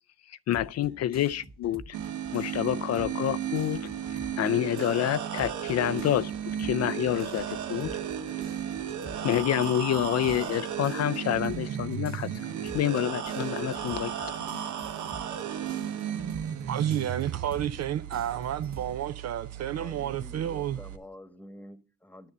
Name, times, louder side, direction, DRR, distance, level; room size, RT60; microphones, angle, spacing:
voice 1, 0.3-2.0 2.3-6.3 6.6-7.9 9.2-12.4 12.7-14.3, left 12 dB, 60° left, 0.4 m, -28 dB
sound 1, 0.5-4.5 4.8-18.9, right 2 dB, 30° right, 1.9 m, -47 dB
sound 2, 1.9-21.0, right 9 dB, 75° right, 1.0 m, -35 dB
voice 2, 16.7-20.8, right 10 dB, 60° right, 0.6 m, -31 dB
voice 3, 19.8-22.3, left 1 dB, 5° left, 1.3 m, -48 dB
9.9 x 6.9 x 6.6 m
cardioid pair, 90°, 30 cm